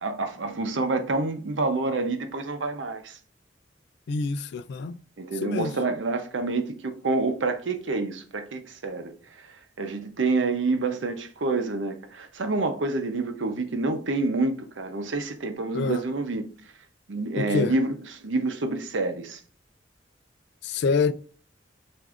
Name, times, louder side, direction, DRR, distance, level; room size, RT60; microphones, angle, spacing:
voice 1, 0.0-3.2 5.2-9.1 9.8-16.4 17.1-17.9 18.2-19.4, right 3 dB, 85° right, 0.7 m, -27 dB
voice 2, 4.1-5.0 5.4-5.8 15.7-16.0 17.4-17.7 20.6-21.1, left 4 dB, 65° left, 0.3 m, -26 dB
6.0 x 2.6 x 2.5 m
head